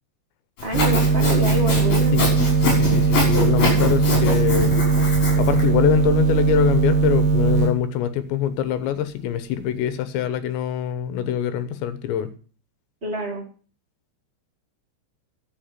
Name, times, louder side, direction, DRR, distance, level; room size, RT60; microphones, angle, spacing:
Sawing, 0.6-5.6, left 3 dB, 55° left, 7.7 m, -25 dB
voice 1, 0.6-2.2 13.0-13.4, equal, 30° right, 1.2 m, -27 dB
sound 1, 0.7-7.8, right 4 dB, 75° right, 3.3 m, -19 dB
voice 2, 2.6-4.7 5.4-12.3, left 10 dB, 85° left, 3.3 m, -24 dB
12.0 x 8.0 x 7.4 m
omnidirectional pair, 5.0 m